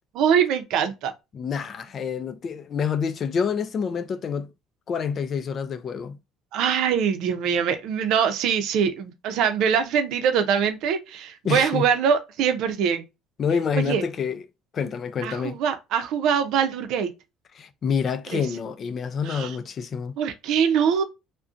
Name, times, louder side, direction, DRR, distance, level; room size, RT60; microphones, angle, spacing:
voice 1, 0.1-1.1 6.5-13.0 13.7-14.0 15.2-17.1 18.3-18.4 19.2-19.6 20.2-21.0, right 7 dB, 70° right, 0.5 m, -23 dB
voice 2, 1.3-4.5 4.9-6.2 11.4-11.9 13.4-14.4 14.7-15.6 17.6-20.1, left 6 dB, 45° left, 0.4 m, -27 dB
2.5 x 2.1 x 2.5 m
supercardioid pair, 90°, 0 cm